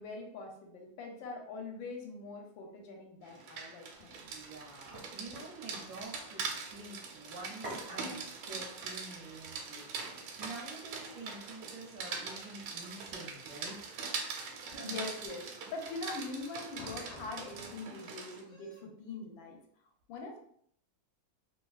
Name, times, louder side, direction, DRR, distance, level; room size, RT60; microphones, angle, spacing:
voice 1, 0.0-4.2 14.8-19.6 20.1-20.4, left 3 dB, 75° left, 1 dB, 1.3 m, -43 dB
Rain, 3.3-18.4, right 5 dB, 90° right, 1.4 m, -43 dB
sound 1, 3.9-11.6, right 1 dB, 30° right, 0.6 m, -52 dB
voice 2, 4.2-13.8 14.7-15.0, right 2 dB, 75° right, -2 dB, 1.0 m, -48 dB
sound 2, 13.9-15.1 15.4-16.0 16.3-17.2 17.5-18.1 18.4-18.9, right 1 dB, 15° left, 0.7 m, -59 dB
3.3 x 2.4 x 2.3 m, 0.67 s
omnidirectional pair, 2.2 m